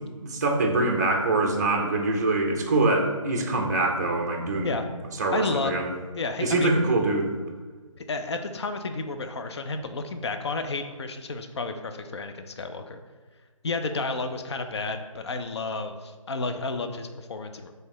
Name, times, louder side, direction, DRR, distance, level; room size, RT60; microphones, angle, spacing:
voice 1, 0.2-4.8 5.2-5.9 6.4-7.4, right 2 dB, 30° right, 2 dB, 0.5 m, -24 dB
voice 2, 5.3-5.7 6.2-6.7 8.0-13.0 13.6-17.7, left 3 dB, 55° left, 7 dB, 0.4 m, -31 dB
4.5 x 3.2 x 3.0 m, 1.4 s
hypercardioid pair, 165°, 17 cm